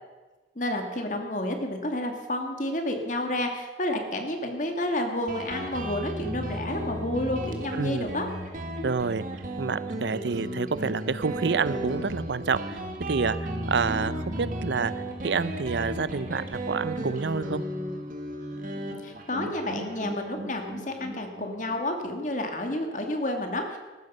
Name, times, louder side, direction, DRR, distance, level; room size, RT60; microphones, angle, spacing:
voice 1, 0.6-8.3 19.0-23.8, left 1 dB, 45° left, 4 dB, 2.0 m, -30 dB
Guitar, 5.3-22.5, right 1 dB, 50° right, 1.7 m, -34 dB
voice 2, 7.7-8.1 8.8-9.2 9.6-12.8 13.1-14.9 15.2-17.6, right 5 dB, 80° right, 16 dB, 0.6 m, -28 dB
14.5 x 13.0 x 5.5 m, 1.2 s
head